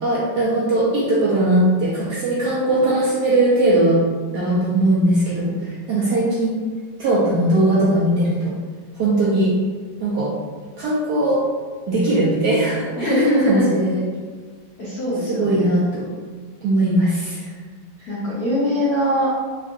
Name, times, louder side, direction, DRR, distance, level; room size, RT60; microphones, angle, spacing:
voice 1, 0.0-4.0 4.3-5.5 5.9-6.6 7.0-8.5 8.9-9.5 10.0-10.3 10.8-11.4 11.9-14.0 15.3-16.1 16.6-17.5, right 1 dB, 70° right, -7 dB, 1.0 m, -19 dB
voice 2, 13.0-13.7 14.8-15.7 18.1-19.5, equal, 65° left, -8 dB, 1.0 m, -21 dB
3.6 x 2.4 x 2.4 m, 1.5 s
omnidirectional pair, 2.2 m